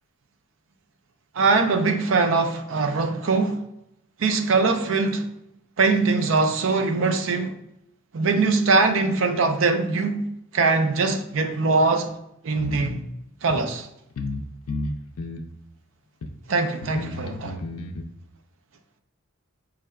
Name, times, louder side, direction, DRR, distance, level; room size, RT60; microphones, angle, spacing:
voice 1, 1.3-3.6 4.2-5.3 5.8-7.5 8.1-10.3 10.5-12.1 12.4-13.0 13.4-13.9 16.5-17.6, right 3 dB, 60° right, 0.4 m, -22 dB
sound 1, 12.6-13.0 13.5-13.6 14.2-14.4 14.7-15.5 16.2-16.3 16.8-18.0, left 2 dB, 85° left, 0.4 m, -32 dB
4.6 x 3.2 x 2.3 m
head